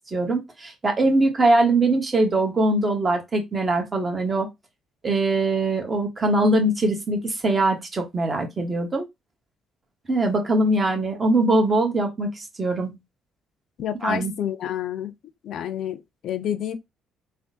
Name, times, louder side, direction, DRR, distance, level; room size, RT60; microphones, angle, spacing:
voice 1, 0.1-4.5 5.0-9.1 10.1-13.0 14.0-14.3, right 2 dB, 35° right, 1.2 m, -22 dB
voice 2, 13.8-15.1 15.4-16.7, left 10 dB, 60° left, 0.4 m, -29 dB
3.5 x 2.2 x 2.7 m
hypercardioid pair, 55°, 0 cm